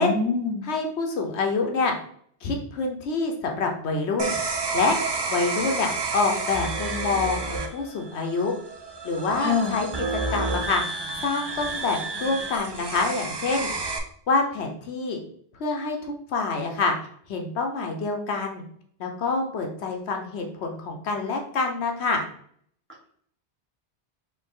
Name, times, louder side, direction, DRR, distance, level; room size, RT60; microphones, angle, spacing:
voice 1, 0.0-0.6 9.4-9.8, left 4 dB, 10° right, -3 dB, 1.1 m, -25 dB
voice 2, 0.6-1.9 2.4-4.4 4.7-5.0 5.3-8.5 9.0-10.8 11.2-13.7 14.3-15.2 15.6-16.9 17.3-18.6 19.0-22.2, left 3 dB, 75° left, 3 dB, 1.0 m, -26 dB
sound 1, 4.2-14.0, right 3 dB, 45° right, 0.3 m, -30 dB
4.4 x 2.7 x 3.7 m, 0.62 s
omnidirectional pair, 1.1 m